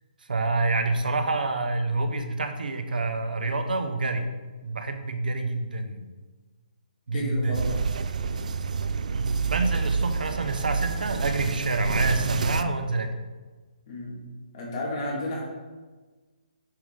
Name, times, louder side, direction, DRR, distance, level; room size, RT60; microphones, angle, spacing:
voice 1, 0.3-4.3 4.6-6.1 7.1-7.7 9.1-13.1, right 3 dB, 85° right, 7 dB, 0.9 m, -27 dB
voice 2, 7.1-7.8 13.9-14.2 14.5-15.4, left 1 dB, 25° left, -4 dB, 1.9 m, -32 dB
sound 1, 7.5-12.6, right 5 dB, 55° right, 0.4 m, -28 dB
8.9 x 4.9 x 3.7 m, 1.3 s
hypercardioid pair, 175°, 5 cm